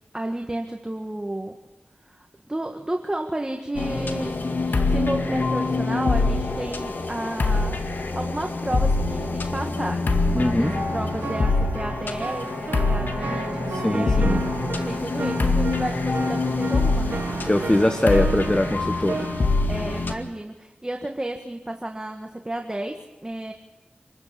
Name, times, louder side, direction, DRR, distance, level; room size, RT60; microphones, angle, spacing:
voice 1, 0.1-1.6 2.1-17.3 19.7-23.5, right 1 dB, 20° right, 3 dB, 1.8 m, -32 dB
sound 1, 3.7-20.1, left 3 dB, 75° left, 2.1 m, -25 dB
voice 2, 10.3-10.7 13.7-14.4 17.5-19.3, left 1 dB, 25° left, 6 dB, 1.3 m, -22 dB
sound 2, 10.6-19.5, right 4 dB, 90° right, 1.4 m, -33 dB
27.0 x 13.5 x 8.5 m, 1.0 s
cardioid pair, 50°, 3 cm